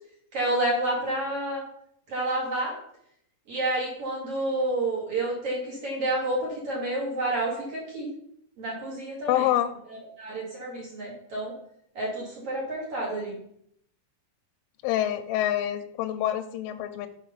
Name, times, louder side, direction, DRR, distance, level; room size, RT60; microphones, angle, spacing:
voice 1, 0.3-1.6 2.1-2.7 3.5-8.1 8.6-9.5 9.9-11.5 11.9-13.4, right 1 dB, 45° right, -4 dB, 2.2 m, -29 dB
voice 2, 9.3-9.7 14.8-17.1, left 12 dB, 85° left, 7 dB, 2.9 m, -26 dB
6.6 x 5.1 x 5.6 m, 0.70 s
omnidirectional pair, 5.7 m